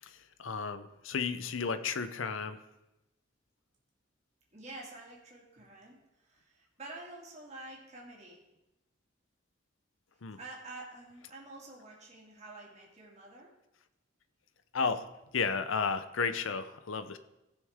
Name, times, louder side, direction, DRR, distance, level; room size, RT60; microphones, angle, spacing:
voice 1, 0.4-2.6 10.2-10.4 14.7-15.1 15.3-17.2, left 5 dB, 80° left, 11 dB, 0.6 m, -33 dB
voice 2, 4.5-8.4 10.4-13.5, right 2 dB, 35° right, -3 dB, 2.2 m, -48 dB
15.5 x 6.3 x 3.6 m, 0.95 s
head